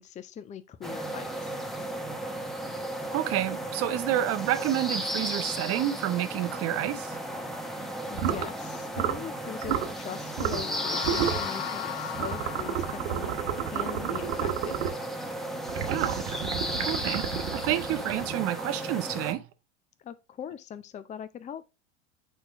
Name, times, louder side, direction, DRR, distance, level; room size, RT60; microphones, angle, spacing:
voice 1, 0.0-1.6 8.1-13.3 13.7-15.0 20.0-21.6, left 9 dB, 20° left, 0.5 m, -41 dB
sound 1, 0.8-19.3, right 1 dB, ahead, 0.9 m, -35 dB
voice 2, 3.1-7.2 15.9-16.2 16.8-17.3 17.5-19.5, right 13 dB, 45° right, 0.8 m, -29 dB
bubbles with drinking straw in glass of water, 8.1-8.5 8.9-9.3 9.6-9.9 10.4-10.7 11.0-11.5 12.2-15.0 15.7-18.5, right 9 dB, 70° right, 1.2 m, -31 dB
sound 2, 10.3-13.8, left 12 dB, 60° left, 0.7 m, -37 dB
6.2 x 4.5 x 3.5 m
hypercardioid pair, 90°, 35 cm